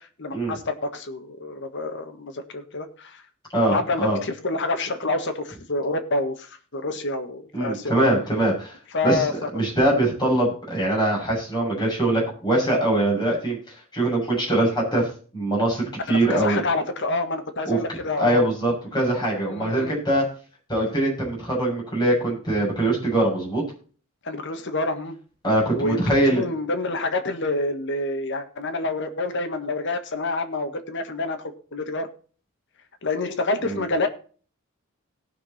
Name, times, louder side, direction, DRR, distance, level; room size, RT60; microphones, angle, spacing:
voice 1, 0.0-3.2 3.7-7.9 8.9-9.3 9.9-10.0 16.1-18.5 19.5-20.0 24.2-25.2 25.7-31.4 31.7-32.1 33.0-34.1, left 2 dB, 60° left, 7 dB, 1.6 m, -28 dB
voice 2, 3.5-4.2 7.5-8.8 9.0-9.3 9.5-13.6 13.9-15.1 15.3-16.6 17.6-17.8 18.2-20.2 20.7-23.6 25.4-26.4 33.7-33.8, right 1 dB, 20° left, -4 dB, 6.8 m, -22 dB
18.5 x 6.1 x 4.3 m, 0.41 s
head